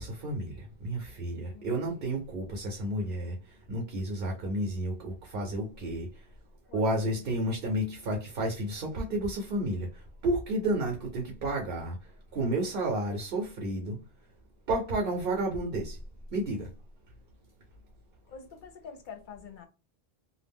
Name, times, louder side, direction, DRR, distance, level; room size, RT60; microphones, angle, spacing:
voice 1, 0.0-3.3 3.7-6.1 6.7-9.9 10.2-12.0 12.3-14.0 14.7-16.0 16.3-16.7, right 1 dB, 65° right, 0.8 m, -31 dB
voice 2, 1.5-2.1 6.7-6.9 18.3-19.7, left 7 dB, 60° left, 0.7 m, -46 dB
2.3 x 2.0 x 3.4 m
omnidirectional pair, 1.1 m